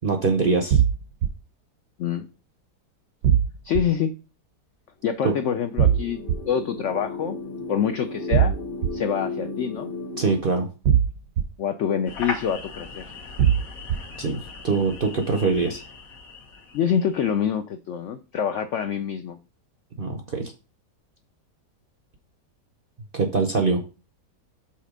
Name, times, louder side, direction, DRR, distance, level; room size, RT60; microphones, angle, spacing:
voice 1, 0.0-0.8 5.2-5.3 10.2-10.7 14.2-14.4 14.6-15.8 20.0-20.5 23.1-23.8, right 4 dB, 50° right, 4 dB, 0.6 m, -23 dB
sound 1, 0.7-1.3 3.2-3.8 5.8-6.4 8.3-8.9 10.9-11.4 13.4-14.0, right 9 dB, 70° right, 1.1 m, -19 dB
voice 2, 3.6-4.1 5.0-6.2 6.5-7.4 7.7-8.6 8.9-9.9 11.6-13.1 16.7-19.4, left 8 dB, 75° left, 9 dB, 0.6 m, -26 dB
sound 2, 5.2-10.4, left 2 dB, 40° left, 1.0 m, -35 dB
sound 3, 12.1-17.4, left 4 dB, 55° left, 1.5 m, -38 dB
5.8 x 4.1 x 4.9 m, 0.33 s
omnidirectional pair, 1.8 m